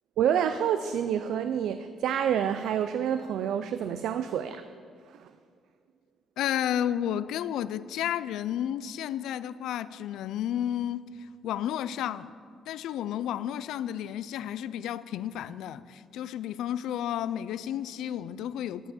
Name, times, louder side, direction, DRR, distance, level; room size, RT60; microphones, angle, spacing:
voice 1, 0.2-4.7 5.1-5.3, right 9 dB, 80° right, 0.4 m, -28 dB
voice 2, 6.4-12.3 12.7-18.9, left 10 dB, 85° left, 0.3 m, -32 dB
11.5 x 5.5 x 7.4 m
cardioid pair, 110°, 0 cm